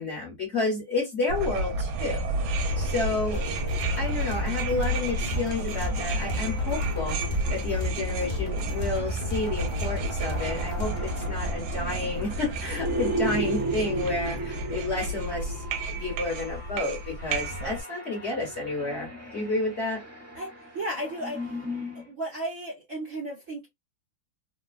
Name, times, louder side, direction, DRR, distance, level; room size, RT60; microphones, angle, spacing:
voice 1, 0.0-2.2 2.4-3.4 4.0-7.2 7.5-15.6 15.9-20.0, left 3 dB, 40° left, 1.2 m, -30 dB
sound 1, 1.3-17.8, right 1 dB, 80° right, 1.3 m, -31 dB
sound 2, 2.3-22.1, right 2 dB, 10° right, 0.7 m, -37 dB
sound 3, 3.3-11.3, right 1 dB, 90° left, 0.4 m, -36 dB
voice 2, 20.7-21.5 22.0-23.7, right 1 dB, 55° right, 1.0 m, -34 dB
3.3 x 2.1 x 2.2 m
omnidirectional pair, 2.1 m